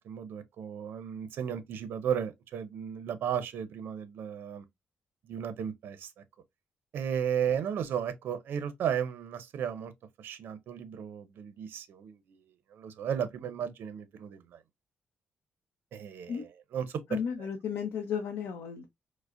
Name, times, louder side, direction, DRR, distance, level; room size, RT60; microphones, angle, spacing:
voice 1, 0.0-4.6 5.3-6.1 6.9-9.9 10.2-12.4 12.7-14.6 15.9-17.5, right 8 dB, 75° right, 0.5 m, -34 dB
voice 2, 17.1-18.9, left 7 dB, 90° left, 0.6 m, -34 dB
4.8 x 2.0 x 2.4 m
cardioid pair, 105°, 4 cm